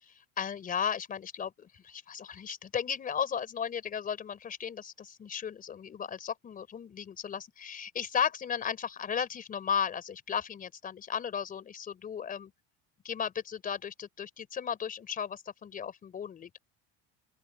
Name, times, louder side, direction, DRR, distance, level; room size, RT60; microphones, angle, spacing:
voice 1, 0.0-12.5 13.0-16.6, left 7 dB, 25° left, 4.3 m, -35 dB
open air
cardioid pair, 160°, 35 cm